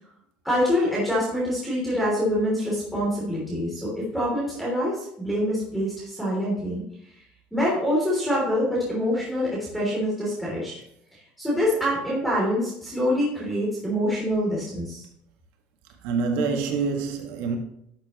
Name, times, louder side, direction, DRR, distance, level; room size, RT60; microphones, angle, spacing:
voice 1, 0.4-6.8 7.5-10.7 11.4-15.1, equal, ahead, 3.1 m, -25 dB
voice 2, 16.0-17.6, right 4 dB, 80° right, 1.7 m, -26 dB
12.0 x 6.5 x 3.1 m
cardioid pair, 130°, 4 cm